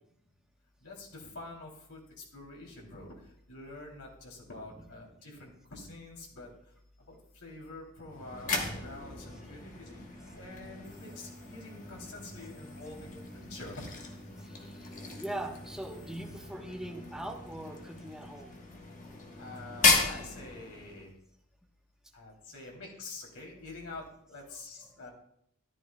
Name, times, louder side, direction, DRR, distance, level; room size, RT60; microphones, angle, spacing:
voice 1, 0.8-2.0 2.3-3.1 3.5-6.5 7.1-10.0 10.3-13.8 19.4-21.1 22.1-24.0 24.3-25.1, left 2 dB, 70° left, -1 dB, 3.2 m, -46 dB
sound 1, 8.1-21.1, left 4 dB, 35° left, 1.4 m, -35 dB
voice 2, 14.4-18.6 24.9-25.0, right 1 dB, ahead, 0 dB, 1.2 m, -41 dB
13.5 x 11.0 x 2.3 m, 0.72 s
head